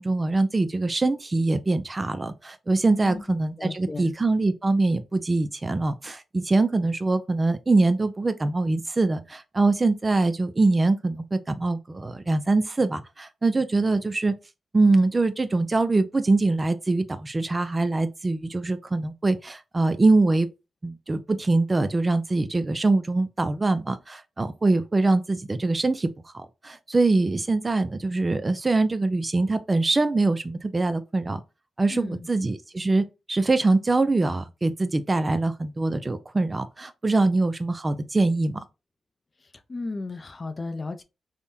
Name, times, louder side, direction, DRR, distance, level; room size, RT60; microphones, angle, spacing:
voice 1, 0.0-14.3 14.7-20.5 20.8-31.4 31.8-38.6, right 2 dB, 30° right, 0.3 m, -23 dB
voice 2, 3.6-4.1 31.9-32.3 39.7-41.0, left 3 dB, 40° left, 0.5 m, -34 dB
3.5 x 2.2 x 2.6 m
cardioid pair, 55°, 0 cm